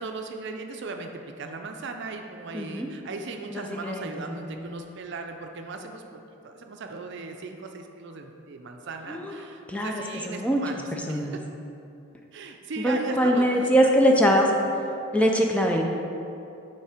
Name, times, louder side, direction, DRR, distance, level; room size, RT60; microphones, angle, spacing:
voice 1, 0.0-6.0 6.3-11.4 12.3-14.4, right 3 dB, 60° right, 4 dB, 0.5 m, -37 dB
voice 2, 2.5-2.9 3.5-4.1 9.1-9.3 9.7-10.6 11.1-11.3 12.8-14.5 15.1-15.8, equal, 5° left, 1 dB, 0.4 m, -22 dB
7.1 x 3.3 x 4.9 m, 2.7 s
head